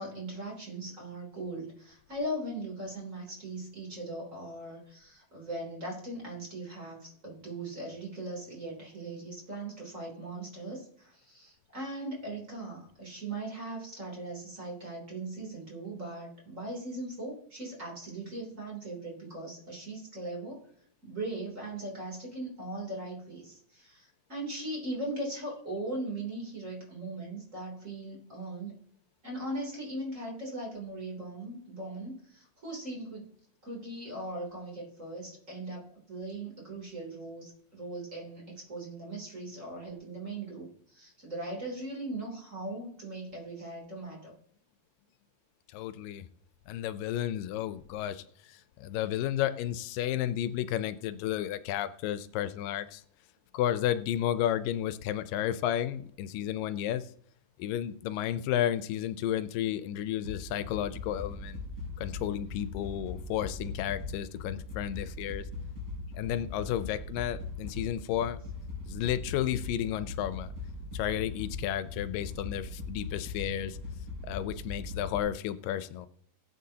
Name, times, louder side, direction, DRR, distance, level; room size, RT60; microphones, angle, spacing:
voice 1, 0.0-20.6 21.0-28.7 29.2-33.3 33.6-44.3, right 2 dB, 25° right, 3.1 m, -39 dB
voice 2, 45.7-46.3 46.7-48.2 48.5-53.0 53.5-57.0 57.6-61.6 62.0-65.5 66.2-68.4 68.9-70.5 70.9-73.8 74.2-76.1, left 11 dB, 90° left, 2.3 m, -32 dB
sound 1, 60.2-75.2, left 3 dB, 40° right, 5.0 m, -40 dB
18.0 x 9.0 x 2.8 m
omnidirectional pair, 3.8 m